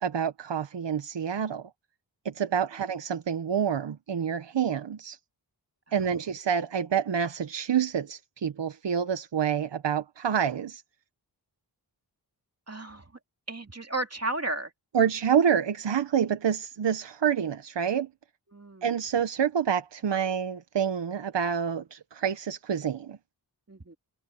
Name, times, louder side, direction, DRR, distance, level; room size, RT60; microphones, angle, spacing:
voice 1, 0.0-1.7 2.2-5.2 5.9-10.8 14.9-18.1 18.8-23.2, right 8 dB, 85° right, 1.0 m, -27 dB
voice 2, 12.7-13.0 13.5-14.7 18.5-18.9 23.7-24.0, right 2 dB, 35° right, 2.7 m, -33 dB
wide cardioid pair, 70°, 42 cm